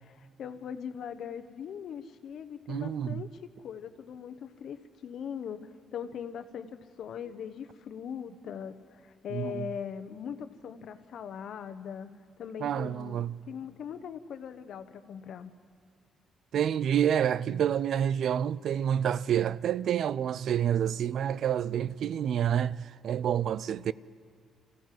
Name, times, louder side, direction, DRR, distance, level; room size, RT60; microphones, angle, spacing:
voice 1, 0.1-3.3 3.6-12.1 12.4-15.5, left 8 dB, 70° left, 1.1 m, -40 dB
voice 2, 2.7-3.2 9.3-9.7 12.6-13.4 16.5-23.9, right 9 dB, 65° right, 0.4 m, -28 dB
24.0 x 15.5 x 7.7 m
cardioid pair, 90°, 0 cm